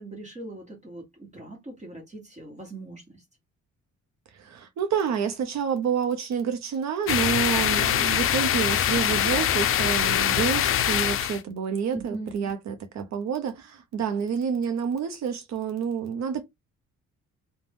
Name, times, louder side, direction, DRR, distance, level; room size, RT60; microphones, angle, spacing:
voice 1, 0.0-3.2 11.8-12.5, right 2 dB, 25° right, 1.2 m, -40 dB
voice 2, 4.3-16.4, right 7 dB, 65° right, 0.6 m, -28 dB
sound 1, 7.1-11.4, left 10 dB, 45° left, 0.4 m, -23 dB
2.5 x 2.2 x 3.3 m
cardioid pair, 90°, 30 cm